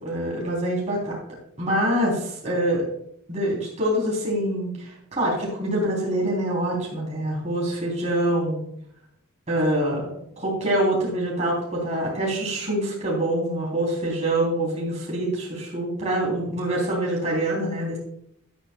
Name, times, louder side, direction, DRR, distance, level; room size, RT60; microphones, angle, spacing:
voice 1, 0.0-1.2 1.6-2.8 3.3-8.6 9.5-10.1 10.4-18.0, right 1 dB, 30° right, -4 dB, 3.3 m, -25 dB
12.5 x 11.0 x 2.3 m, 0.74 s
head